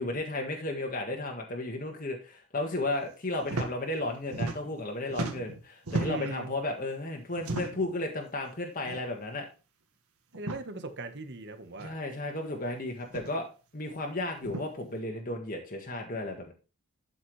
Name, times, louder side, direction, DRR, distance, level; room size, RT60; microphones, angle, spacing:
voice 1, 0.0-9.5 11.8-13.5 13.7-16.5, left 2 dB, 40° left, 1.6 m, -34 dB
sound 1, 3.4-3.7 4.0-4.8 5.1-6.4 7.4-7.9 8.8-9.0 9.3-9.4 10.3-10.6 11.8-11.9 13.0-13.3 14.4-14.6, right 2 dB, 90° right, 1.8 m, -35 dB
voice 2, 6.0-6.5 10.4-12.0, right 2 dB, 50° right, 1.4 m, -39 dB
12.0 x 5.6 x 3.3 m
head